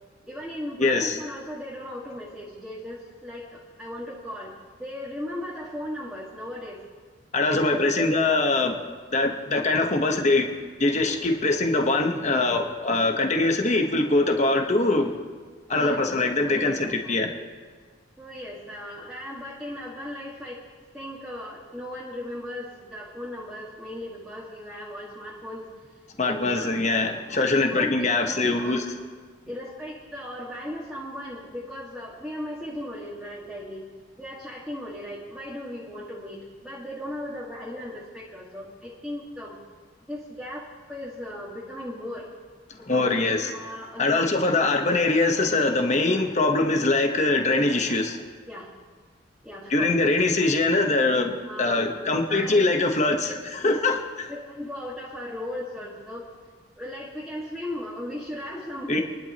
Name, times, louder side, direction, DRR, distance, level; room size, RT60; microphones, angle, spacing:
voice 1, 0.3-6.8 7.6-8.3 8.7-9.0 15.7-16.0 16.4-17.2 18.2-20.6 20.9-26.8 27.3-28.9 29.5-33.9 34.2-39.6 40.1-42.3 42.8-44.3 48.5-48.7 49.4-50.0 51.4-52.7 53.3-53.8 54.3-56.3 56.8-59.0, left 1 dB, 5° right, -8 dB, 1.9 m, -37 dB
voice 2, 0.8-1.2 7.3-8.8 9.1-10.5 10.8-15.1 15.7-17.3 26.2-28.8 42.8-43.5 44.0-48.2 49.7-54.3 58.9-59.0, left 2 dB, 35° left, 3 dB, 1.3 m, -23 dB
27.5 x 11.5 x 3.1 m, 1.5 s
head